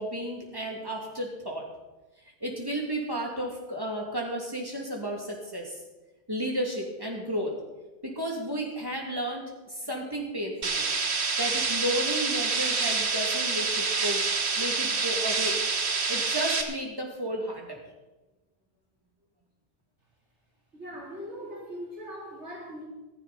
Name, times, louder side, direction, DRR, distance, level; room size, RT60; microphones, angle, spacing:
voice 1, 0.0-1.7 2.2-5.8 6.3-7.6 8.0-10.9 11.4-14.2 14.5-15.6 16.1-17.8, equal, 20° right, 0 dB, 2.8 m, -33 dB
sound 1, 10.6-16.6, right 4 dB, 70° right, 1.6 m, -27 dB
voice 2, 20.7-22.8, equal, 90° right, -3 dB, 4.2 m, -40 dB
15.0 x 14.5 x 4.3 m, 1.1 s
omnidirectional pair, 1.1 m